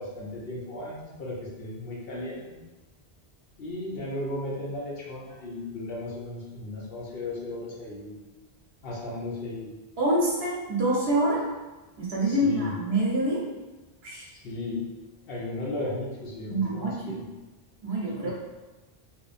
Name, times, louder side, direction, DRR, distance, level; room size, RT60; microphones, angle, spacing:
voice 1, 0.0-2.6 3.6-8.2 8.8-9.7 12.2-12.7 14.4-14.9 15.3-17.3 18.2-18.3, left 2 dB, 70° left, -4 dB, 0.8 m, -35 dB
voice 2, 10.0-11.5 12.0-13.5 14.0-14.3 16.5-17.2 17.8-18.3, right 1 dB, 85° right, -4 dB, 1.0 m, -26 dB
2.9 x 2.0 x 2.4 m, 1.2 s
omnidirectional pair, 1.0 m